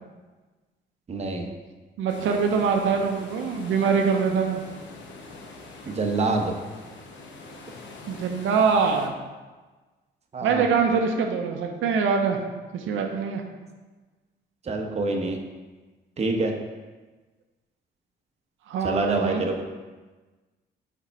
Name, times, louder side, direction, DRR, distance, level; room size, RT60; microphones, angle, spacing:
voice 1, 1.1-1.5 5.9-6.5 10.3-10.7 14.6-15.4 16.2-16.5 18.8-19.6, right 3 dB, 35° right, 2 dB, 0.8 m, -26 dB
voice 2, 2.0-4.6 8.1-9.1 10.4-12.4 12.7-13.4 18.7-19.4, right 5 dB, 80° right, 3 dB, 0.7 m, -23 dB
sound 1, 2.1-9.1, left 3 dB, 70° left, 0.9 m, -43 dB
4.8 x 4.5 x 4.5 m, 1.3 s
cardioid pair, 90°, 20 cm